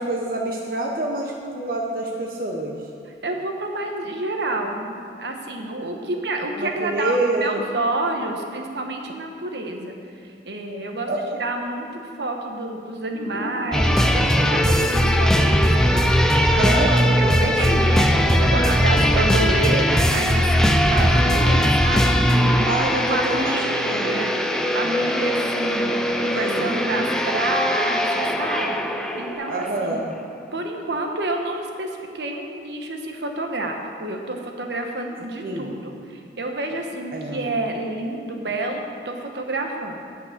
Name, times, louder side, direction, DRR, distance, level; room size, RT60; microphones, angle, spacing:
voice 1, 0.0-2.8 6.6-7.6 11.1-11.5 16.6-18.0 18.3-18.8 22.6-24.3 26.3-26.8 29.5-30.2 35.4-35.8 37.1-37.5, right 1 dB, 50° right, -1 dB, 0.9 m, -27 dB
voice 2, 3.2-10.0 10.2-11.1 11.4-16.0 16.5-22.7 23.1-30.0 30.5-40.0, right 2 dB, 75° right, 3 dB, 1.1 m, -29 dB
sound 1, 13.1-29.3, equal, 20° left, 2.6 m, -33 dB
sound 2, 13.7-29.7 30.0-30.1, equal, 5° left, 0.4 m, -20 dB
8.8 x 8.0 x 6.6 m, 2.4 s
head